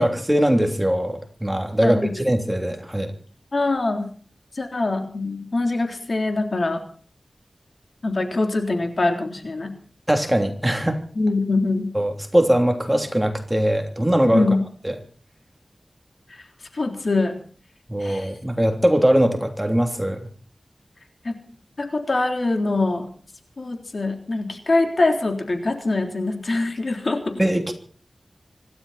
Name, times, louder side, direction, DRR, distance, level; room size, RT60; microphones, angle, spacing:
voice 1, 0.0-3.1 10.1-11.0 11.9-14.5 14.8-14.9 17.9-20.3 27.4-27.7, right 1 dB, 10° right, 4 dB, 3.2 m, -21 dB
voice 2, 3.5-4.1 4.6-6.8 8.0-9.7 11.2-11.9 14.2-14.6 16.3-16.4 16.7-17.4 18.0-18.4 21.2-21.3 21.8-23.1 23.6-27.4, left 2 dB, 60° left, 4 dB, 3.6 m, -23 dB
26.0 x 12.5 x 4.3 m, 0.42 s
wide cardioid pair, 85°, 0 cm